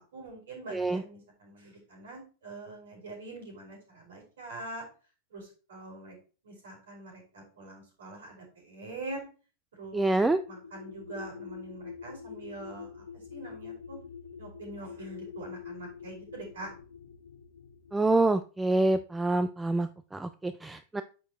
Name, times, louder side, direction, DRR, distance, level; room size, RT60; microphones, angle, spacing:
voice 1, 0.0-4.8 5.3-6.1 6.4-9.2 9.7-10.2 10.5-13.0 13.3-14.0 14.4-16.7, right 2 dB, 60° right, -1 dB, 5.1 m, -44 dB
voice 2, 0.7-1.0 9.9-10.4 17.9-21.0, right 2 dB, 10° right, 11 dB, 0.4 m, -26 dB
sound 1, 9.8-18.1, left 6 dB, 70° left, 1.1 m, -45 dB
9.9 x 6.5 x 3.0 m, 0.35 s
figure-of-eight pair, 90°, 0 cm